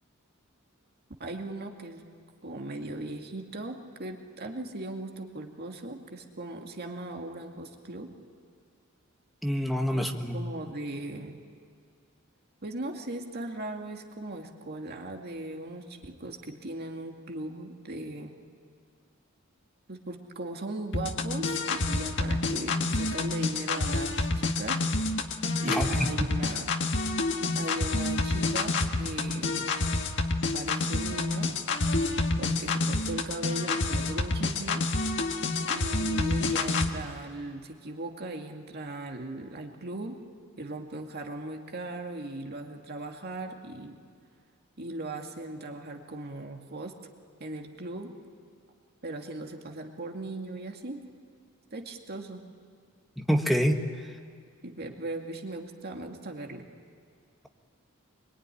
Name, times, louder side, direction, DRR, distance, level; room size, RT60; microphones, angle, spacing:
voice 1, 1.2-2.0 2.4-8.1 9.9-11.4 12.6-18.3 19.9-24.8 25.6-26.7 27.5-29.8 30.5-31.6 32.4-34.8 35.6-40.2 40.6-44.0 44.8-47.0 47.4-48.1 49.0-51.0 51.7-52.5 54.6-56.7, right 2 dB, 50° right, 3 dB, 2.2 m, -38 dB
voice 2, 9.4-10.4 25.7-26.1 53.3-53.8, equal, ahead, 3 dB, 1.6 m, -26 dB
sound 1, 20.9-36.9, left 3 dB, 60° left, 1.7 m, -28 dB
25.0 x 23.0 x 10.0 m, 2.1 s
head